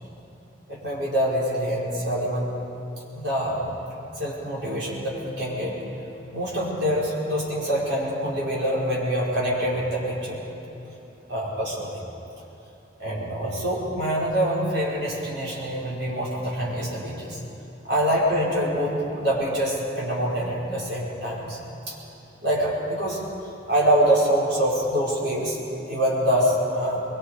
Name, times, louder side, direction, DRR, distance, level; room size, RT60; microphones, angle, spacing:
voice 1, 0.7-2.5 3.1-3.7 4.2-5.8 6.3-10.4 11.3-12.0 13.0-17.4 17.8-21.6 21.9-22.0 22.4-23.2 23.7-25.6 25.9-27.0, equal, 65° right, -6 dB, 5.7 m, -25 dB
23.5 x 23.0 x 5.0 m, 3.0 s
head